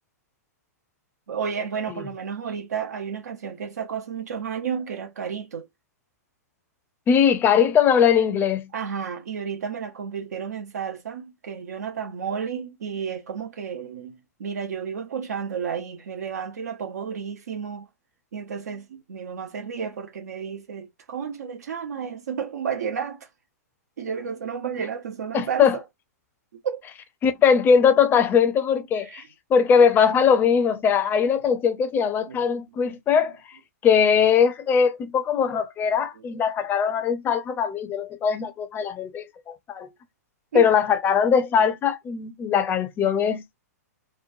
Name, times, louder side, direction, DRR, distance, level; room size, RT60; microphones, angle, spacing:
voice 1, 1.3-5.7 8.7-17.9 18.3-23.3 24.0-25.8 26.5-26.8 29.0-29.3 32.3-32.4 32.8-32.9 35.9-36.2 40.5-40.7, right 7 dB, 70° right, 0.5 m, -32 dB
voice 2, 7.1-8.7 25.3-25.8 27.2-29.2 29.5-33.3 33.8-39.9 40.5-43.4, left 7 dB, 20° left, 0.5 m, -20 dB
3.0 x 2.1 x 2.5 m
hypercardioid pair, 110°, 9 cm